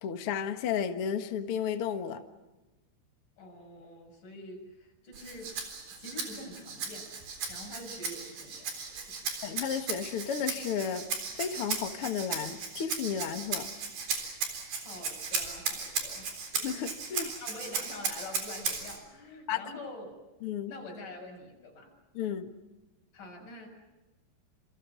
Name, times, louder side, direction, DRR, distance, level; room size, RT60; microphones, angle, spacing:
voice 1, 0.0-2.2 9.4-11.0 11.4-13.7 16.6-17.3 19.5-19.6 20.4-20.7 22.1-22.5, left 8 dB, 75° left, 7 dB, 1.2 m, -33 dB
voice 2, 3.4-5.6 5.9-7.1 7.5-9.3 14.4-16.3 17.1-20.1 20.7-21.9 23.1-23.7, left 2 dB, 50° left, 1 dB, 8.1 m, -46 dB
Rattle (instrument), 5.1-19.0, right 5 dB, 60° right, 5.5 m, -36 dB
28.5 x 27.5 x 6.2 m, 1.1 s
omnidirectional pair, 5.0 m